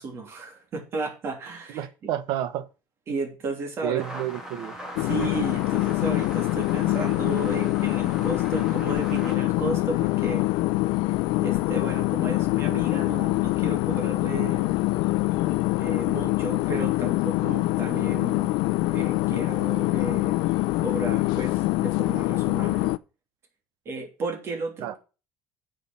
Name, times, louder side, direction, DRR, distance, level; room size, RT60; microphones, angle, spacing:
voice 1, 0.0-2.1 3.1-4.0 5.0-10.5 11.3-14.7 15.8-18.5 18.9-20.4 20.8-22.9 23.8-25.0, right 3 dB, 35° right, 3.1 m, -34 dB
voice 2, 1.7-2.7 3.8-4.7 24.8-25.0, right 12 dB, 65° right, 1.2 m, -30 dB
sound 1, 4.0-9.4, equal, 10° right, 2.5 m, -40 dB
sound 2, 5.0-23.0, left 19 dB, 75° left, 0.6 m, -24 dB
9.5 x 6.6 x 6.0 m
cardioid pair, 155°, 7 cm